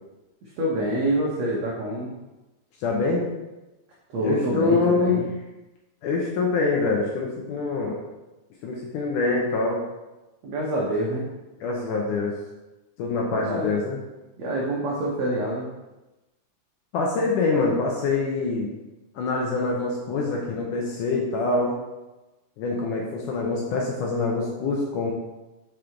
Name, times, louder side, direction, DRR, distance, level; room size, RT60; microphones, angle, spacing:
voice 1, 0.4-2.1 4.1-5.3 10.4-11.3 13.3-13.8 14.4-15.7, right 1 dB, 80° right, -4 dB, 1.5 m, -26 dB
voice 2, 2.8-3.3 4.2-5.2 6.0-8.0 8.6-9.8 11.6-12.3 13.0-14.0 16.9-18.7 19.2-21.8 22.6-25.1, left 3 dB, 75° left, -1 dB, 2.0 m, -25 dB
5.5 x 5.1 x 4.5 m, 1.1 s
omnidirectional pair, 4.4 m